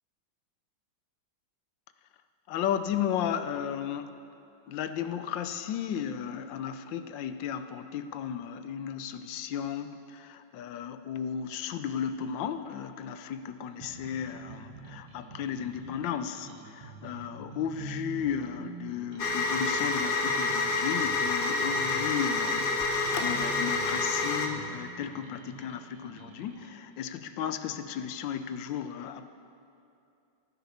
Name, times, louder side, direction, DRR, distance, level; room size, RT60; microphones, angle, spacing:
voice 1, 2.5-4.1 4.7-29.3, left 8 dB, 80° left, 10 dB, 1.3 m, -34 dB
sound 1, 13.8-26.8, right 5 dB, 70° right, 1.6 m, -47 dB
sound 2, 19.2-24.5, left 3 dB, 45° left, 0.7 m, -28 dB
16.5 x 9.7 x 4.2 m, 2.6 s
omnidirectional pair, 2.0 m